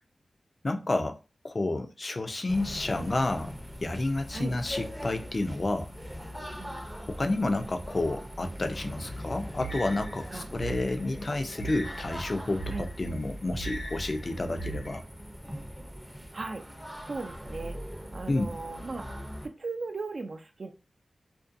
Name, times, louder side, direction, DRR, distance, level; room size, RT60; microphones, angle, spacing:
voice 1, 0.6-1.2 1.4-5.9 7.0-15.0 18.3-18.5, left 2 dB, 45° left, 0.4 m, -30 dB
sound 1, 2.5-19.5, equal, 5° right, 0.5 m, -41 dB
sound 2, 9.6-15.0, right 2 dB, 60° left, 0.9 m, -40 dB
voice 2, 16.3-16.7 17.0-17.8 18.1-19.1 19.4-20.7, right 3 dB, 60° right, 0.4 m, -37 dB
2.5 x 2.2 x 2.5 m
cardioid pair, 60°, 0 cm